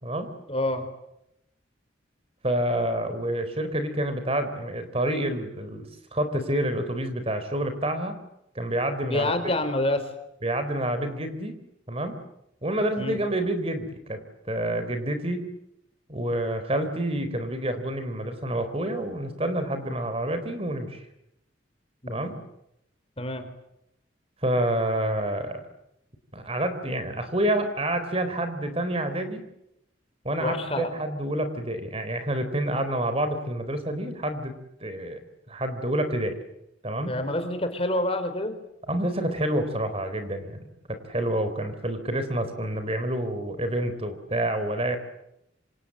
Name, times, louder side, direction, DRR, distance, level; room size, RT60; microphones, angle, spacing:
voice 1, 0.5-0.9 9.1-10.1 13.0-13.2 22.0-22.3 23.2-23.5 30.4-30.9 37.0-38.6, left 1 dB, 30° left, 8 dB, 3.8 m, -27 dB
voice 2, 2.4-5.9 6.1-8.2 8.6-9.4 10.4-11.6 11.9-12.2 12.6-14.2 14.4-15.4 16.1-21.0 22.1-22.4 24.4-25.6 26.3-29.4 30.2-34.5 34.8-35.2 35.5-36.4 36.8-37.1 38.9-40.6 41.0-45.0, right 1 dB, 30° right, 9 dB, 4.0 m, -28 dB
27.5 x 27.0 x 7.9 m, 0.83 s
head